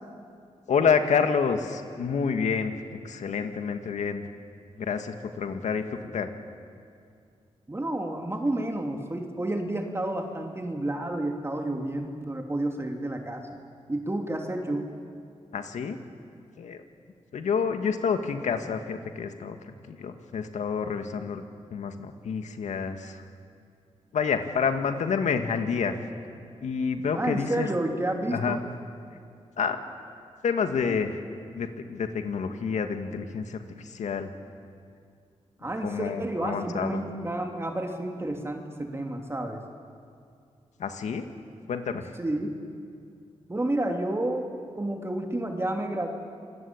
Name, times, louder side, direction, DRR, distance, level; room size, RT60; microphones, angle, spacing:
voice 1, 0.7-2.8 3.0-4.2 4.8-6.3 15.5-16.0 16.6-16.8 17.3-21.4 21.7-23.2 24.1-26.0 26.6-27.7 28.3-28.6 29.6-29.8 30.4-31.2 31.5-34.3 35.8-37.0 40.8-41.3 41.7-42.1, left 6 dB, 90° left, 7 dB, 2.0 m, -28 dB
voice 2, 7.7-13.6 13.9-14.9 27.1-28.6 35.6-39.6 42.2-42.6 43.5-44.5 44.7-46.1, right 1 dB, 20° right, 3 dB, 3.0 m, -30 dB
27.5 x 23.5 x 8.8 m, 2.4 s
cardioid pair, 80°, 12 cm